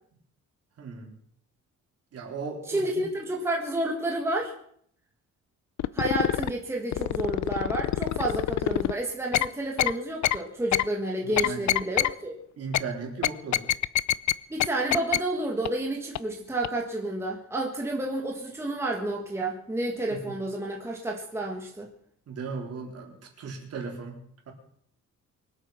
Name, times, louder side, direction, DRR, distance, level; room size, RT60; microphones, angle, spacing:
voice 1, 0.8-1.1 2.1-3.0 11.2-11.7 12.6-13.7 20.1-20.4 22.3-24.2 24.5-24.6, right 4 dB, 50° right, 0 dB, 4.0 m, -37 dB
voice 2, 2.7-4.5 5.9-12.3 14.5-21.9, right 2 dB, 10° right, -1 dB, 1.7 m, -30 dB
sound 1, 5.8-6.5 6.9-8.9 9.3-9.5 9.8-9.9 10.2-10.4 10.7-10.8 11.4-12.1 12.7-12.8 13.2-14.3 14.6-14.7 14.9-15.2 15.6-15.7 16.2-16.3 16.6-16.7, left 13 dB, 65° left, 0.6 m, -24 dB
24.0 x 8.4 x 5.9 m, 0.64 s
cardioid pair, 180°, 31 cm